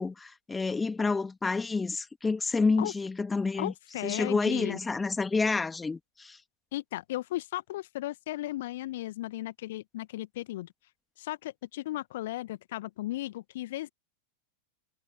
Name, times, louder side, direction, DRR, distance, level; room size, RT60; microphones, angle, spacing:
voice 1, 0.0-3.7 4.0-6.4, left 4 dB, 10° left, 3.0 m, -29 dB
voice 2, 3.6-4.8 6.7-10.7 11.2-13.9, left 15 dB, 55° left, 1.3 m, -35 dB
figure-of-eight pair, 90°, 0 cm